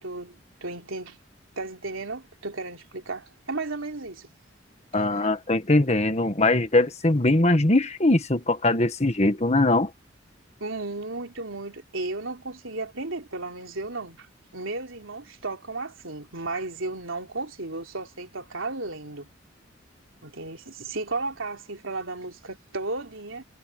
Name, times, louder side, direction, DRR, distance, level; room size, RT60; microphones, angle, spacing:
voice 1, 0.0-1.2 1.6-4.3 5.2-5.3 10.6-14.3 14.5-19.3 20.2-23.4, right 3 dB, 90° right, 3.5 m, -34 dB
voice 2, 4.9-9.9, left 2 dB, 35° left, 1.5 m, -21 dB
head